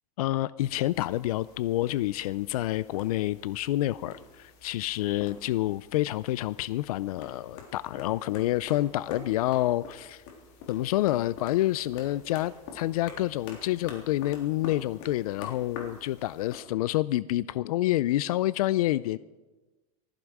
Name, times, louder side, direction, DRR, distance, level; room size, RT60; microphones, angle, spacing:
voice 1, 0.2-10.2 10.7-19.2, left 15 dB, 75° left, 18 dB, 0.4 m, -28 dB
sound 1, 0.6-16.6, left 5 dB, 50° left, 3.7 m, -47 dB
19.5 x 14.5 x 4.8 m, 1.2 s
supercardioid pair, 160°, 19 cm